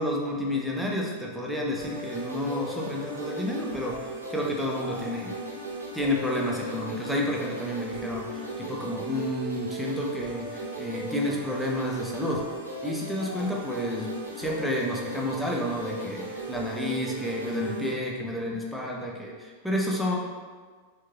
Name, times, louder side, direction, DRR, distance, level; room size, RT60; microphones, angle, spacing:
voice 1, 0.0-5.4 5.9-12.4 12.8-20.2, left 1 dB, ahead, -2 dB, 0.6 m, -30 dB
sound 1, 1.8-17.9, right 2 dB, 80° right, 0.6 m, -37 dB
4.5 x 2.9 x 2.3 m, 1.5 s
figure-of-eight pair, 90°, 0 cm